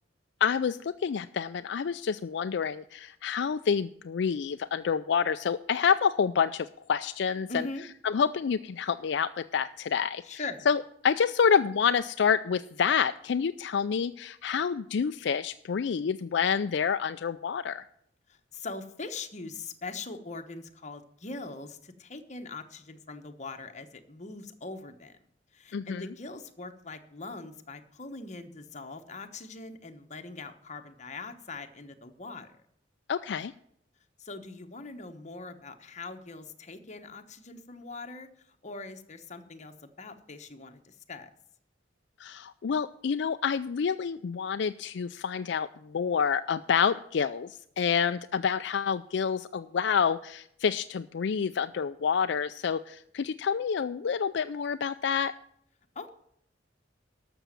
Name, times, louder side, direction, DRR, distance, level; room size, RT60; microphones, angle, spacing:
voice 1, 0.4-7.7 8.0-17.8 25.7-26.1 33.1-33.5 42.2-55.3, left 6 dB, 65° left, 11 dB, 0.4 m, -28 dB
voice 2, 7.5-7.8 10.2-10.7 18.3-25.2 25.5-32.5 34.2-41.3 55.9-56.1, left 3 dB, 40° left, 7 dB, 1.2 m, -42 dB
12.5 x 7.0 x 7.5 m, 0.70 s
head